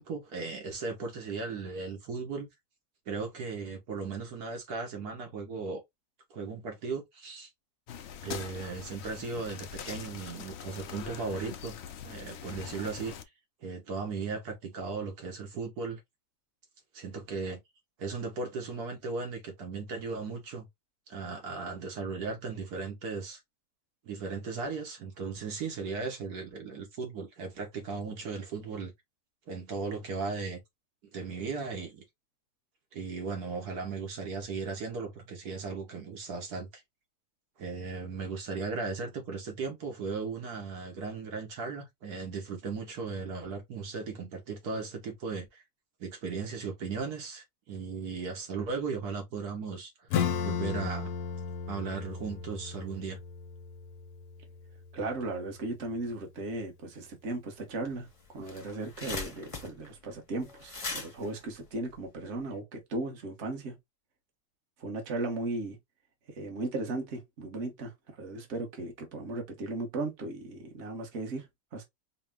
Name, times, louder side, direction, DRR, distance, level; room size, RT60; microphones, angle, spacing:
voice 1, 0.0-2.5 3.1-5.8 6.3-7.5 8.2-11.7 12.0-13.1 13.6-16.0 16.9-17.6 18.0-20.7 21.1-23.4 24.0-28.9 29.5-30.6 31.1-32.0 32.9-36.8 37.6-45.6 46.0-51.1 51.7-53.2, right 4 dB, 75° right, 1.6 m, -37 dB
sound 1, 7.9-13.2, left 8 dB, 70° left, 0.6 m, -43 dB
Acoustic guitar / Strum, 50.1-55.3, left 7 dB, 85° left, 1.2 m, -35 dB
voice 2, 54.9-63.7 64.8-65.8 66.3-71.8, right 2 dB, 50° right, 1.3 m, -36 dB
sound 2, 57.9-58.0 58.2-62.5, left 3 dB, 30° left, 0.7 m, -40 dB
4.8 x 2.1 x 3.5 m
omnidirectional pair, 1.7 m